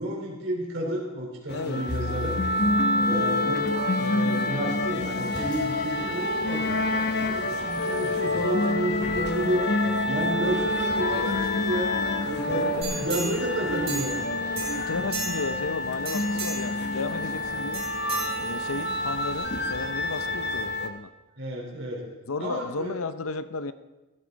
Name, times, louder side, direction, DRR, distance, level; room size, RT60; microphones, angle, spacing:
voice 1, 0.0-2.4 3.0-9.6 10.1-11.9 12.2-14.3 21.4-22.1 22.4-23.0, right 1 dB, 60° right, -2 dB, 3.9 m, -31 dB
voice 2, 1.5-1.9 12.5-13.0 14.8-17.9 18.4-21.1 22.3-23.7, left 4 dB, 75° left, 13 dB, 0.6 m, -33 dB
sound 1, 1.5-20.9, left 2 dB, 50° left, 0.9 m, -27 dB
Bus, 5.2-20.7, equal, 20° left, 3.3 m, -45 dB
sound 2, 12.8-14.3 14.6-15.6 16.0-16.8 17.7-18.8 19.3-19.4, right 3 dB, 30° right, 6.0 m, -35 dB
15.5 x 13.0 x 4.0 m, 1.1 s
head